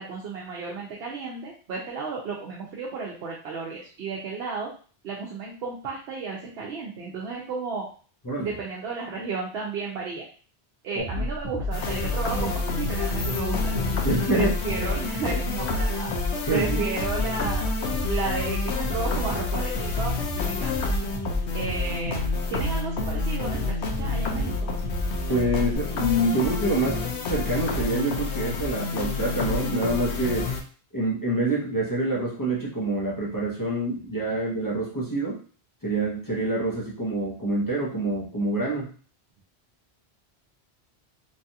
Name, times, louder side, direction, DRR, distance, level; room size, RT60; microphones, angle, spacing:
voice 1, 0.0-4.7 5.0-7.9 8.4-10.3 10.8-13.7 14.3-16.1 16.5-17.7 18.1-20.8 21.5-22.2 22.5-24.6, right 4 dB, 75° right, -3 dB, 0.9 m, -33 dB
voice 2, 10.9-11.3 14.0-14.5 16.4-16.8 25.3-30.5 30.9-35.4 35.8-38.9, right 1 dB, 20° left, -6 dB, 0.8 m, -26 dB
sound 1, 11.0-25.8, left 1 dB, 30° right, 0.6 m, -31 dB
sound 2, 11.7-30.6, left 3 dB, 85° left, 0.9 m, -29 dB
3.2 x 2.4 x 2.7 m, 0.41 s
omnidirectional pair, 1.1 m